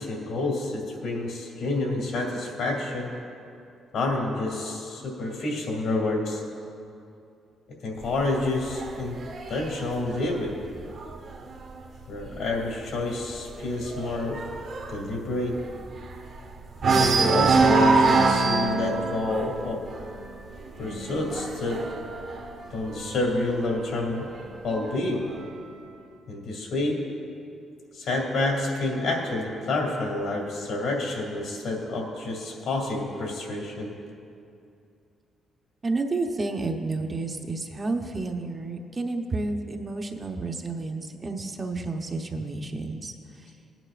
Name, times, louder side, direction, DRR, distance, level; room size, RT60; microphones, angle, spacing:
voice 1, 0.0-3.1 3.9-6.4 7.8-9.2 9.5-10.6 12.1-14.4 14.9-15.6 16.9-19.8 20.8-21.9 22.7-24.3 24.6-25.3 26.3-27.0 27.9-33.9, left 2 dB, 75° left, -2 dB, 2.5 m, -28 dB
sound 1, 8.0-11.6 12.0-12.4 12.6-12.7 13.1-16.4 16.8-23.3 24.2-25.2, right 3 dB, 60° right, 1.1 m, -25 dB
voice 2, 35.8-43.5, right 3 dB, 30° right, 3 dB, 0.8 m, -31 dB
18.0 x 9.0 x 2.5 m, 2.6 s
cardioid pair, 90°, 0 cm